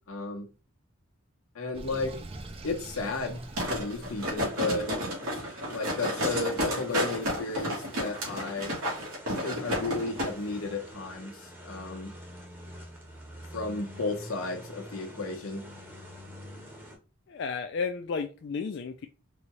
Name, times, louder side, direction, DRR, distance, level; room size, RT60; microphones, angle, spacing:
voice 1, 0.1-0.5 1.5-2.1 2.6-4.9 5.7-8.7 9.4-12.1 13.5-15.6, left 3 dB, 90° left, 1.0 m, -33 dB
Sink (filling or washing), 1.7-4.5, right 2 dB, 25° right, 0.4 m, -44 dB
sound 1, 2.3-17.0, equal, 10° right, 0.8 m, -47 dB
sound 2, 3.6-10.3 10.6-10.7, equal, 90° right, 1.5 m, -31 dB
voice 2, 17.3-19.1, left 5 dB, 55° left, 0.3 m, -33 dB
4.1 x 2.3 x 3.1 m
head